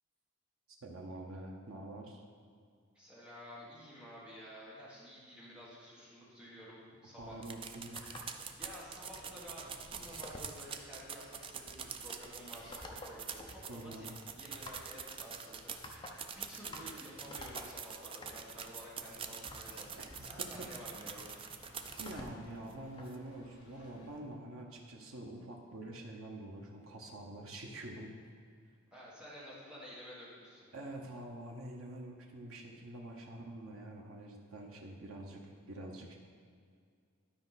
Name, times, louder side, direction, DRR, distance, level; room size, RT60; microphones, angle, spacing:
voice 1, 0.8-2.2 7.2-8.0 13.7-14.2 20.0-20.1 20.5-20.7 22.0-28.1 30.7-36.1, right 1 dB, 85° right, 0 dB, 1.0 m, -46 dB
voice 2, 2.9-7.4 8.6-14.1 14.3-21.4 23.7-23.9 28.9-30.7, equal, 5° right, -7 dB, 1.5 m, -51 dB
sound 1, 7.2-24.2, left 1 dB, 20° left, 0.7 m, -53 dB
sound 2, 7.4-22.3 22.7-22.8 23.1-23.2, right 7 dB, 25° right, 0.3 m, -45 dB
sound 3, 18.8-24.1, left 1 dB, 80° left, 1.7 m, -63 dB
12.0 x 4.9 x 4.1 m, 2.2 s
head